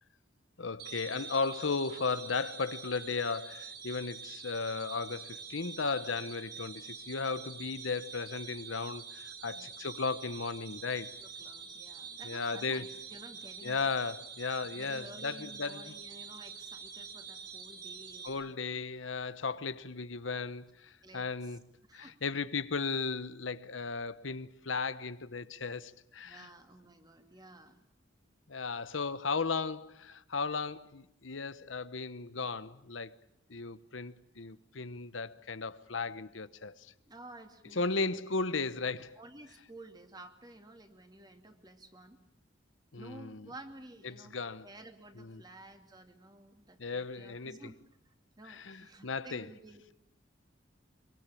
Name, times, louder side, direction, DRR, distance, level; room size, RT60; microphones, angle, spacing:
voice 1, 0.6-11.1 12.2-12.9 13.6-16.0 18.2-21.6 21.9-26.5 28.5-33.2 33.5-36.9 37.7-39.2 42.9-43.5 44.0-44.7 45.2-45.4 46.8-47.7 48.5-49.5, left 4 dB, 90° left, 1.1 m, -36 dB
sound 1, 0.8-18.3, right 6 dB, 60° right, 7.1 m, -46 dB
voice 2, 11.2-13.9 14.7-18.6 21.0-21.6 21.9-22.2 26.2-27.8 37.1-38.3 39.2-42.2 43.0-44.4 44.6-47.8 48.0-49.8, right 1 dB, 20° right, 2.5 m, -52 dB
25.0 x 23.5 x 8.6 m
head